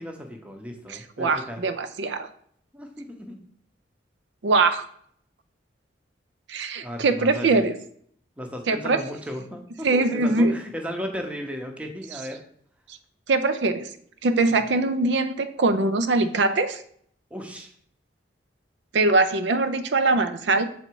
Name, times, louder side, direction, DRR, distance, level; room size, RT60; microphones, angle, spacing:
voice 1, 0.0-1.6 2.7-3.4 6.8-7.6 8.4-12.4 14.6-14.7 17.3-17.7, equal, 5° right, 3 dB, 0.7 m, -35 dB
voice 2, 0.9-2.3 4.4-4.9 6.5-7.8 8.7-9.0 9.8-10.5 13.3-13.9 14.2-16.8 18.9-20.7, right 3 dB, 75° right, 10 dB, 0.5 m, -22 dB
6.9 x 3.9 x 4.5 m, 0.63 s
head